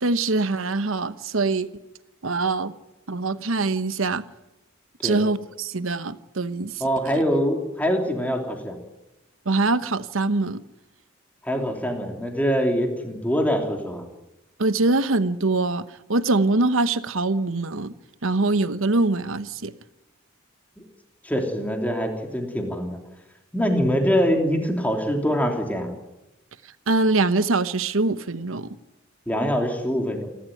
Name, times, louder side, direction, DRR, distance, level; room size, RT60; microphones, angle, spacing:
voice 1, 0.0-1.7 2.2-2.7 3.1-4.2 5.0-6.7 9.5-10.6 14.6-17.9 18.2-19.7 26.9-28.7, right 3 dB, 70° right, 1.1 m, -23 dB
voice 2, 6.8-8.7 11.4-14.0 21.2-23.0 23.5-25.9 29.3-30.3, equal, 10° left, 3.2 m, -24 dB
28.5 x 12.5 x 9.3 m
head